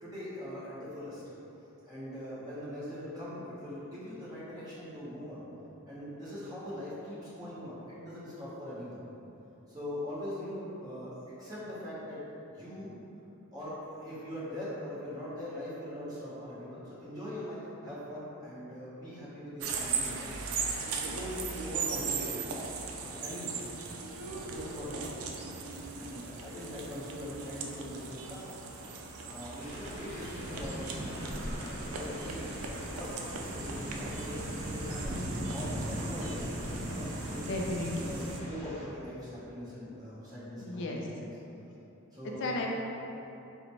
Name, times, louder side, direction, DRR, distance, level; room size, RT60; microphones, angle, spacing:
voice 1, 0.0-1.2 1.9-5.4 5.9-9.0 9.7-12.9 13.5-20.4 21.1-21.3 21.6-22.6 23.0-23.7 24.3-25.5 25.9-28.5 29.2-34.5 34.7-37.4 37.9-41.3 42.1-42.7, left 1 dB, 20° right, -11 dB, 1.2 m, -42 dB
sound 1, 19.6-38.4, right 5 dB, 85° right, 0.4 m, -39 dB
sound 2, 29.6-38.9, equal, 35° left, 0.7 m, -45 dB
sound 3, 30.3-38.2, equal, 65° right, 0.8 m, -40 dB
voice 2, 37.4-38.2 40.6-41.1 42.4-42.7, left 2 dB, 55° left, 0 dB, 0.3 m, -34 dB
3.9 x 2.0 x 4.4 m, 2.9 s
head